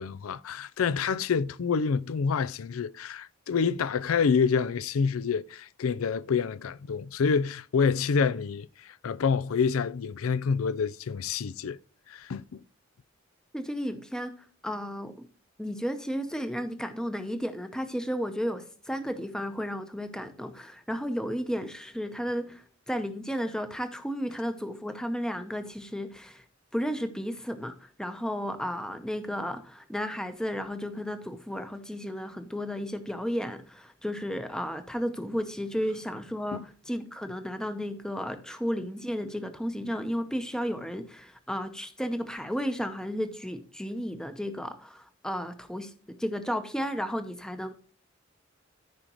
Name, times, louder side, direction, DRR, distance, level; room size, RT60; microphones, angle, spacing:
voice 1, 0.0-11.8 12.1-12.6 36.5-36.6, left 5 dB, 85° left, 0.4 m, -27 dB
voice 2, 13.5-15.2 15.6-26.4 26.7-47.7, equal, 5° left, 0.7 m, -33 dB
14.0 x 5.0 x 3.0 m
head